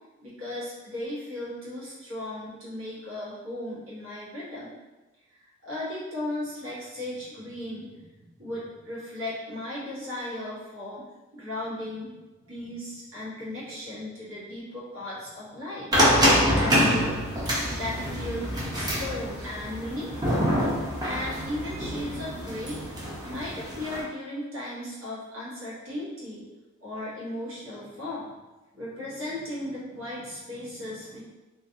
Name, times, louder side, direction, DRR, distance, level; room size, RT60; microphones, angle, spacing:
voice 1, 0.2-4.8 5.3-11.0 11.3-12.1 12.4-20.5 21.0-22.8 23.2-26.5 26.8-28.3 28.7-31.2, left 1 dB, 85° right, -9 dB, 1.2 m, -36 dB
sound 1, 15.9-24.0, equal, 20° right, 0.5 m, -26 dB
2.5 x 2.3 x 2.6 m, 1.1 s
head